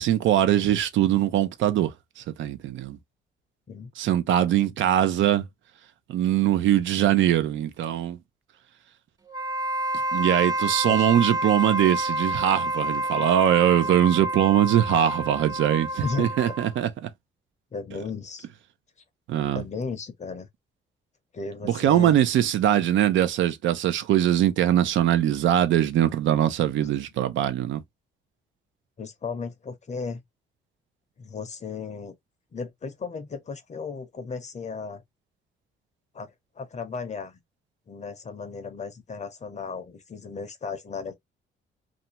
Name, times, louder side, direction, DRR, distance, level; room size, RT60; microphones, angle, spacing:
voice 1, 0.0-3.0 4.0-5.5 6.1-8.2 10.1-17.1 19.3-19.6 21.6-27.8, right 11 dB, 75° right, 0.5 m, -22 dB
Wind instrument woodwind instrument, 9.3-16.8, right 1 dB, 20° right, 0.4 m, -28 dB
voice 2, 17.7-18.5 19.5-20.5 21.3-22.2 29.0-30.2 31.2-32.2 32.5-35.0 36.1-37.4 37.9-41.1, left 5 dB, 35° left, 0.6 m, -35 dB
2.5 x 2.2 x 2.7 m
cardioid pair, 90°, 20 cm